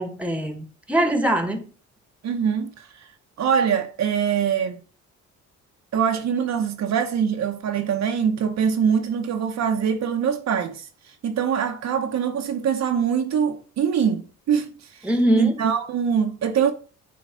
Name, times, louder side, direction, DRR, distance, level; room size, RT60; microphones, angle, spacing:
voice 1, 0.0-1.6 15.0-15.5, right 1 dB, 5° right, 1.5 m, -22 dB
voice 2, 2.2-2.9 3.4-4.8 5.9-10.9 11.2-14.7 15.4-16.7, right 7 dB, 60° right, 1.1 m, -23 dB
8.5 x 3.2 x 5.1 m
cardioid pair, 90°, 30 cm